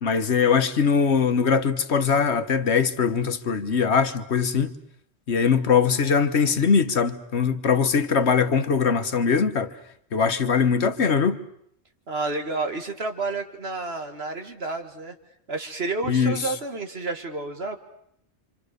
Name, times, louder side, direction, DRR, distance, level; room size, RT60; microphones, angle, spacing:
voice 1, 0.0-4.7 5.3-9.7 10.1-11.4 16.1-16.4, left 6 dB, 75° left, 1.5 m, -21 dB
voice 2, 12.1-15.2 15.5-17.8, right 3 dB, 65° right, 2.2 m, -30 dB
27.5 x 26.5 x 6.7 m
omnidirectional pair, 1.1 m